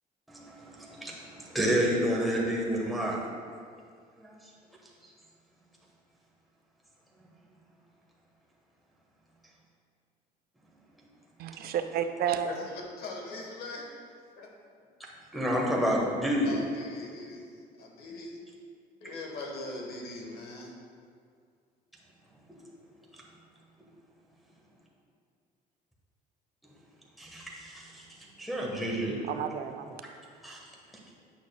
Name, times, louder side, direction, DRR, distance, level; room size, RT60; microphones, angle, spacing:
voice 1, 0.3-3.2 4.2-4.3 15.3-16.6 27.2-28.0 28.4-29.2 30.4-30.6, equal, ahead, -4 dB, 1.3 m, -29 dB
voice 2, 11.4-12.6 29.2-30.0, right 8 dB, 65° right, 8 dB, 0.5 m, -31 dB
voice 3, 12.4-13.9 14.4-14.5 16.4-17.5 17.8-18.3 19.0-20.7, left 2 dB, 65° left, 0 dB, 1.3 m, -41 dB
8.9 x 5.8 x 2.3 m, 2.1 s
cardioid pair, 110°, 17 cm